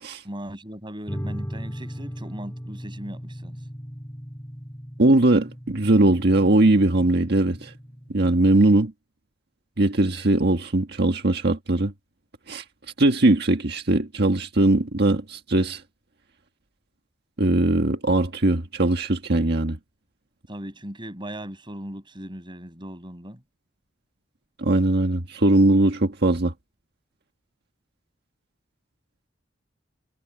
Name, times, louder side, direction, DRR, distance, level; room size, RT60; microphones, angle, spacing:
voice 1, 0.2-3.6 20.5-23.4, equal, 25° right, 6.2 m, -38 dB
sound 1, 1.1-8.7, equal, 15° left, 3.6 m, -38 dB
voice 2, 5.0-7.7 8.1-8.9 9.8-11.9 12.5-12.6 13.0-15.8 17.4-19.8 24.6-26.5, right 2 dB, 60° right, 1.5 m, -20 dB
head